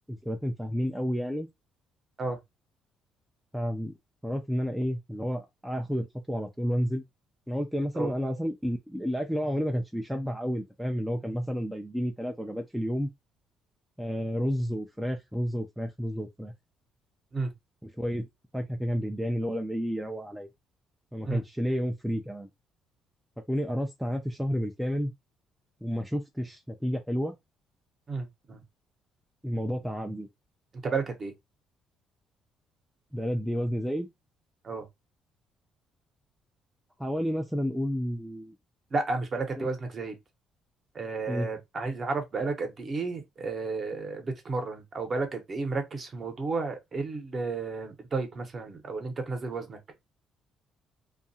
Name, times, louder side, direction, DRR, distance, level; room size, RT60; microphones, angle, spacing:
voice 1, 0.1-1.5 3.5-3.9 4.2-7.0 7.5-13.1 14.0-16.5 17.8-18.3 18.5-20.5 21.1-22.5 23.5-25.1 25.8-27.4 29.4-30.3 33.1-34.1 37.0-38.6 39.5-39.7 41.3-41.5, equal, ahead, 0.3 m, -31 dB
voice 2, 28.1-28.6 30.8-31.3 34.6-34.9 38.9-40.1 40.9-49.8, right 3 dB, 30° right, 0.8 m, -32 dB
2.7 x 2.4 x 2.6 m
cardioid pair, 145°, 0 cm